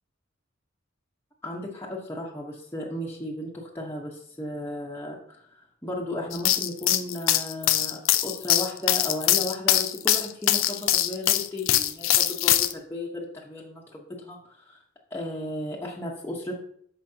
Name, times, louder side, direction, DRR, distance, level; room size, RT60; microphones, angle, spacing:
voice 1, 1.4-14.4 14.7-14.8 15.1-16.6, left 1 dB, 10° left, -4 dB, 1.1 m, -35 dB
sound 1, 6.3-12.7, left 13 dB, 80° left, 0.5 m, -22 dB
13.0 x 5.0 x 2.8 m, 0.64 s
head